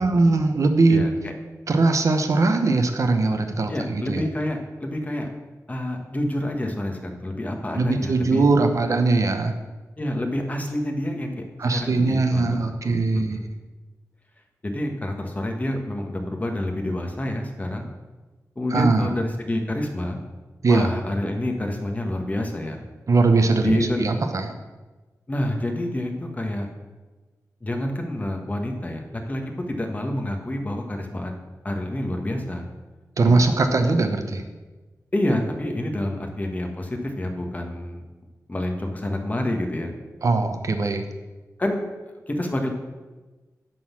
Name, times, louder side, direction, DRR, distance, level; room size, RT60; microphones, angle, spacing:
voice 1, 0.0-1.1 1.7-4.2 7.8-9.5 11.6-13.4 18.7-19.1 20.6-20.9 23.1-24.5 33.2-34.4 40.2-41.0, right 3 dB, 55° right, 6 dB, 0.9 m, -20 dB
voice 2, 0.9-1.3 3.7-5.3 5.7-8.4 10.0-11.3 11.7-12.6 12.8-13.0 13.3-13.5 14.6-17.9 18.6-20.2 20.7-22.8 23.6-24.0 25.3-26.7 27.6-31.3 31.6-32.7 33.2-33.6 35.1-38.0 38.5-39.9 41.6-41.8 42.3-42.7, left 1 dB, 25° left, 3 dB, 1.3 m, -28 dB
11.0 x 4.0 x 7.3 m, 1.2 s
wide cardioid pair, 125°, 6 cm